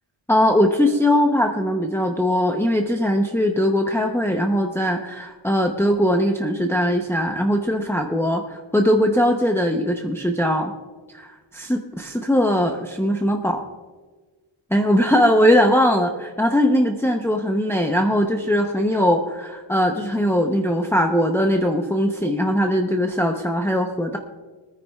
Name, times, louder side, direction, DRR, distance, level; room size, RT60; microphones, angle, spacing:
voice 1, 0.3-10.7 11.1-13.6 14.7-24.2, equal, 5° left, 2 dB, 0.7 m, -20 dB
23.5 x 9.7 x 2.4 m, 1.4 s
wide cardioid pair, 90°, 49 cm